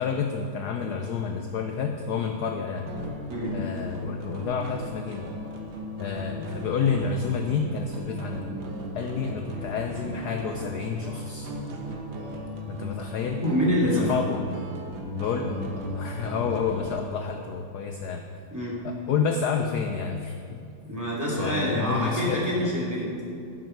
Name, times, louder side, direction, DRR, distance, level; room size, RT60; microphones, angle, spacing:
voice 1, 0.0-2.9 3.5-5.3 6.0-8.6 8.9-11.5 12.7-13.4 13.9-14.4 15.1-18.3 18.8-20.4 21.4-22.5, left 6 dB, 65° left, 4 dB, 1.1 m, -29 dB
sound 1, 2.9-17.0, equal, 75° right, 2.1 m, -36 dB
voice 2, 13.4-14.2 18.5-18.8 20.9-23.1, equal, 10° right, -6 dB, 2.9 m, -26 dB
12.5 x 10.5 x 4.6 m, 2.5 s
omnidirectional pair, 2.1 m